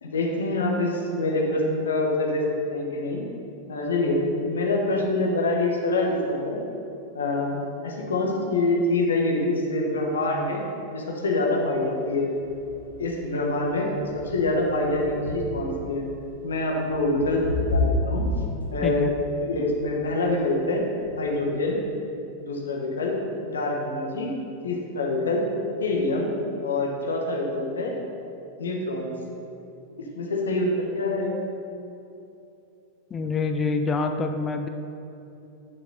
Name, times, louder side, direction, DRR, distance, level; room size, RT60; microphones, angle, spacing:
voice 1, 0.0-3.2 3.7-6.6 7.1-10.6 10.9-12.3 13.0-13.9 14.1-16.0 16.4-17.4 17.7-18.3 18.7-19.1 19.4-20.8 21.2-21.8 22.4-23.1 23.4-24.3 24.6-25.4 25.8-26.3 26.6-27.9 28.6-29.1 30.2-31.4, left 2 dB, 70° left, -1 dB, 1.4 m, -25 dB
sound 1, 11.7-11.8 12.2-21.4, left 2 dB, 85° left, 1.1 m, -32 dB
voice 2, 33.1-34.7, left 4 dB, 20° left, 6 dB, 0.5 m, -26 dB
9.9 x 5.8 x 4.0 m, 2.7 s
figure-of-eight pair, 90°, 0 cm